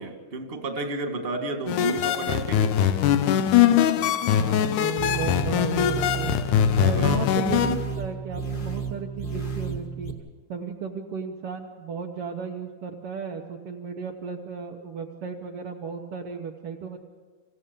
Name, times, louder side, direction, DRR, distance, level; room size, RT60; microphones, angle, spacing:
voice 1, 0.0-2.7 6.8-7.3, right 3 dB, 25° right, 4 dB, 1.4 m, -31 dB
sound 1, 1.7-7.8, left 10 dB, 75° left, 2.1 m, -22 dB
voice 2, 4.4-6.4 6.8-10.1 10.5-17.0, right 6 dB, 80° right, 1 dB, 1.3 m, -34 dB
sound 2, 5.0-10.1, right 5 dB, 35° left, 1.9 m, -32 dB
27.5 x 15.5 x 6.9 m, 1.5 s
omnidirectional pair, 4.1 m